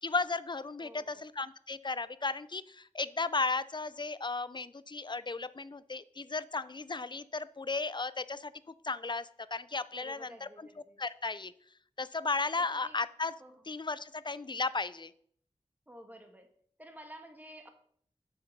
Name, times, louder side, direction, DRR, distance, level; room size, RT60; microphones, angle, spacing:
voice 1, 0.0-8.5 8.8-10.7 11.0-11.5 12.0-13.3 13.7-15.1, left 3 dB, 40° left, 16 dB, 0.4 m, -35 dB
voice 2, 0.8-1.2 9.9-11.0 12.0-12.1 12.6-13.0 13.4-13.6 15.9-16.5 16.8-17.7, equal, 15° right, 5 dB, 1.5 m, -51 dB
6.8 x 6.5 x 5.3 m, 0.62 s
wide cardioid pair, 55°, 12 cm